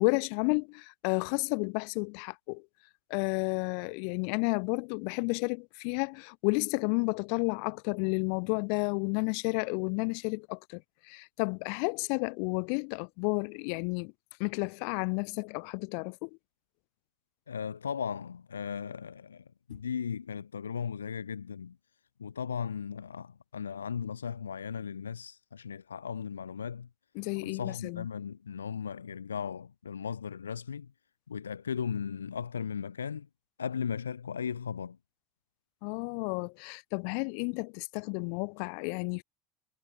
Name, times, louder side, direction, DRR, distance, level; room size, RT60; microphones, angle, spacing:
voice 1, 0.0-2.6 3.1-10.8 11.1-14.1 14.4-16.3 27.1-28.1 35.8-39.2, left 40 dB or more, 55° left, 4.8 m, -31 dB
voice 2, 17.5-21.7 22.2-26.9 27.4-30.9 31.3-33.3 33.6-35.0, left 7 dB, 80° left, 3.3 m, -36 dB
figure-of-eight pair, 70°, 0 cm